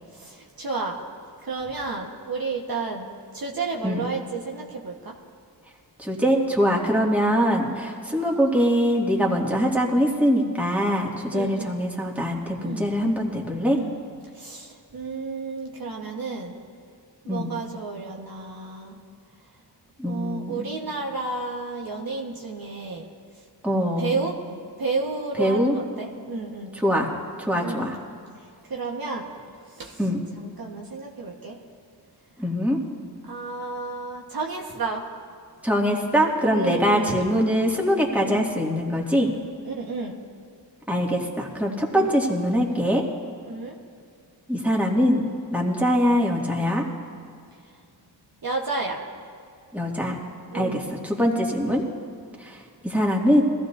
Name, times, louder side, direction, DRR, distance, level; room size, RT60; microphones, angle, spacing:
voice 1, 0.1-1.0 1.4-5.2 7.3-7.5 11.3-11.8 12.6-12.9 13.7-14.0 14.3-16.6 17.2-19.0 20.1-23.1 24.0-24.4 24.8-26.7 27.6-27.9 28.6-30.0 30.4-31.6 33.2-35.1 36.5-37.1 38.2-38.5 39.6-40.2 41.9-42.1 43.5-43.8 48.4-49.0 50.5-50.9, right 3 dB, 55° right, 0 dB, 1.4 m, -31 dB
voice 2, 6.0-13.8 17.3-17.6 20.0-20.7 23.6-24.2 25.4-25.8 26.7-27.1 27.4-28.0 30.0-30.2 32.4-32.8 35.6-39.3 40.9-43.0 44.5-46.8 49.7-50.2 50.5-51.8 52.4-53.4, equal, 5° right, -2 dB, 2.2 m, -23 dB
21.5 x 14.5 x 2.7 m, 2.3 s
cardioid pair, 65°, 42 cm